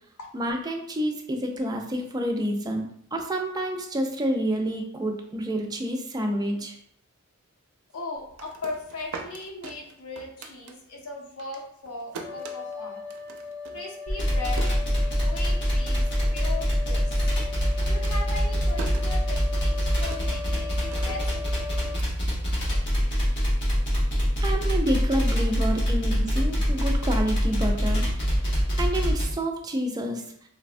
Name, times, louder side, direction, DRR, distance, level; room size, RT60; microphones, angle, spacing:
voice 1, 0.3-2.9 3.1-6.7 24.4-28.1 28.8-30.2, right 1 dB, 20° right, 3 dB, 0.3 m, -28 dB
voice 2, 7.9-13.0 13.7-14.7 15.1-17.1 17.8-22.0, left 3 dB, 85° left, 0 dB, 0.7 m, -38 dB
Barefeet Walking on Wooden Floor, 8.2-11.1 11.4-15.5 15.8-16.5 16.7-23.0, right 4 dB, 85° right, 0.4 m, -43 dB
sound 1, 12.2-22.0, left 5 dB, 35° left, 1.1 m, -39 dB
sound 2, 14.1-29.3, equal, 55° left, 0.9 m, -24 dB
3.3 x 2.1 x 2.4 m, 0.66 s
head